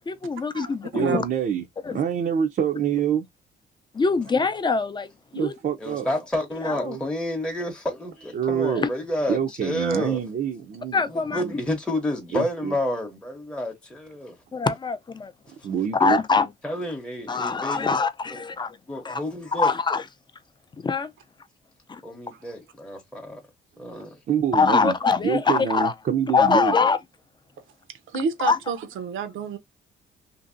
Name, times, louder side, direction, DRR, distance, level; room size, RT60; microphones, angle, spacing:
voice 1, 0.1-1.2 1.8-2.0 3.9-5.5 6.6-7.0 8.8-8.9 10.9-11.4 14.5-15.3 15.9-16.5 17.3-18.8 19.0-19.2 19.6-20.0 20.8-21.1 21.9-22.0 24.5-25.9 26.3-27.0 28.4-28.6, left 4 dB, 25° left, 0.5 m, -23 dB
voice 2, 0.9-1.7 1.9-3.2 5.3-6.1 6.7-7.0 8.3-8.8 9.3-11.0 11.3-11.6 12.3-12.7 15.6-16.2 24.3-25.0 25.2-26.7, right 8 dB, 50° right, 0.5 m, -26 dB
voice 3, 5.8-10.2 11.1-14.4 16.6-18.0 18.3-18.4 18.9-19.7 22.0-23.4 23.8-24.2, left 1 dB, 5° left, 0.8 m, -30 dB
voice 4, 28.1-29.6, right 5 dB, 80° right, 0.7 m, -29 dB
2.8 x 2.6 x 2.6 m
cardioid pair, 90°, 20 cm